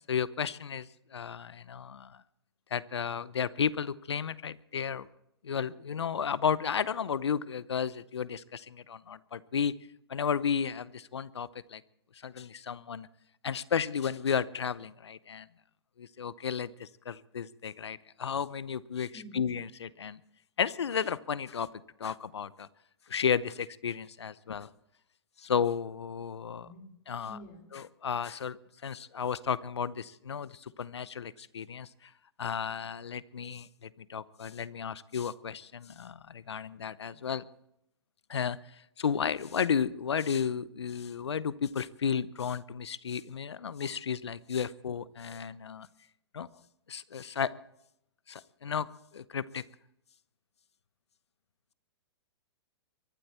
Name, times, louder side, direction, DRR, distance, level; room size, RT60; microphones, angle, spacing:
voice 1, 0.0-2.2 2.7-5.1 5.4-9.7 10.1-11.8 12.2-13.1 13.4-15.5 16.0-20.2 20.6-21.7 22.0-22.7 23.1-24.7 25.4-26.7 27.1-27.4 27.7-28.6 28.8-32.1 32.4-37.4 38.3-38.6 39.0-45.9 46.3-46.5 46.9-47.5 48.3-48.9 49.1-49.6, left 7 dB, 80° left, 19 dB, 0.7 m, -33 dB
voice 2, 19.1-19.5 26.6-26.9 27.3-27.7 45.1-45.2, equal, 40° left, 3 dB, 4.2 m, -48 dB
23.5 x 12.0 x 4.4 m, 0.80 s
hypercardioid pair, 120°, 14 cm